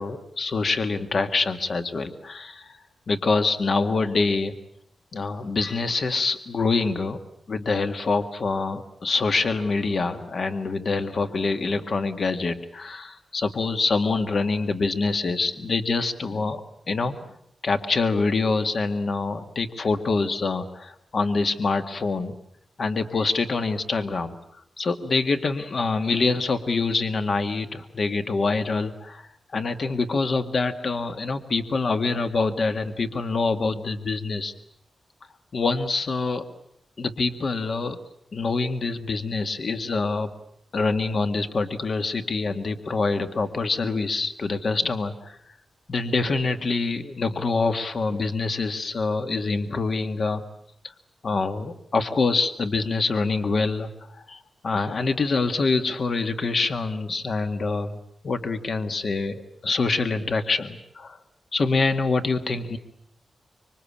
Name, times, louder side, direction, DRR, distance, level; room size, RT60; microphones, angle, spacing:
voice 1, 0.0-2.8 3.1-4.6 5.1-7.2 7.5-17.3 17.6-22.3 22.8-24.3 24.8-34.5 35.5-36.5 37.0-38.0 38.3-40.3 40.7-45.4 45.9-50.4 51.2-53.9 54.3-58.0 58.2-61.2 61.5-62.8, left 3 dB, 55° left, 8 dB, 1.8 m, -25 dB
26.5 x 23.5 x 8.7 m, 0.72 s
wide cardioid pair, 115°, 0 cm